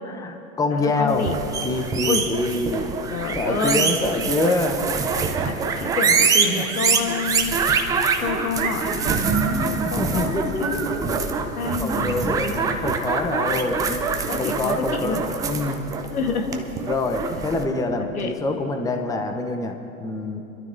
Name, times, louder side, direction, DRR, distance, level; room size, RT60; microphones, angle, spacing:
voice 1, 0.1-1.3 1.6-3.0 3.4-4.8 6.4-6.7 10.0-11.2 11.8-15.8 16.8-20.4, left 2 dB, 10° left, 5 dB, 0.8 m, -26 dB
voice 2, 0.8-1.4 2.1-2.3 3.1-3.9 5.5-7.5 8.2-10.8 11.5-12.3 14.3-15.3 16.1-16.7 17.2-17.3 18.0-18.3, left 4 dB, 80° left, 5 dB, 1.4 m, -28 dB
sound 1, 1.1-17.6, right 5 dB, 10° right, 0.3 m, -25 dB
sound 2, 8.5-11.0, right 7 dB, 65° right, 1.4 m, -32 dB
25.5 x 12.0 x 2.7 m, 3.0 s
hypercardioid pair, 100°, 44 cm